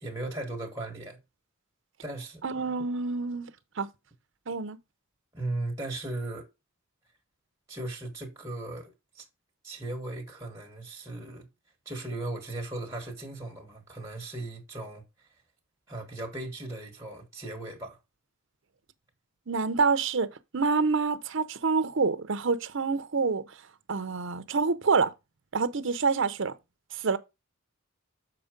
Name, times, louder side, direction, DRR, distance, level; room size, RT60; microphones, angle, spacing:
voice 1, 0.0-1.2 2.0-2.4 5.3-6.5 7.7-9.2 9.6-11.5 11.8-15.0 15.9-18.0, right 2 dB, 15° right, 1.7 m, -37 dB
voice 2, 2.4-3.5 3.8-3.9 4.5-4.8 19.5-23.4 23.9-25.1 25.5-26.5 26.9-27.2, right 4 dB, 60° right, 0.7 m, -27 dB
6.8 x 4.4 x 5.1 m
head